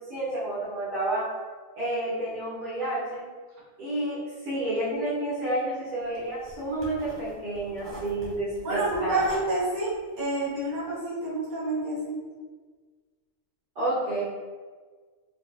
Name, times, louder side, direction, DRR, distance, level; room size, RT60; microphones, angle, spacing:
voice 1, 0.1-1.3 1.8-3.2 3.8-4.2 4.5-9.2 13.8-14.2, right 1 dB, 90° right, -10 dB, 1.8 m, -30 dB
sound 1, 6.0-10.9, right 1 dB, 20° right, 0.8 m, -44 dB
voice 2, 8.6-12.2, right 2 dB, 75° right, -9 dB, 1.8 m, -28 dB
4.7 x 2.3 x 2.3 m, 1.4 s
omnidirectional pair, 1.5 m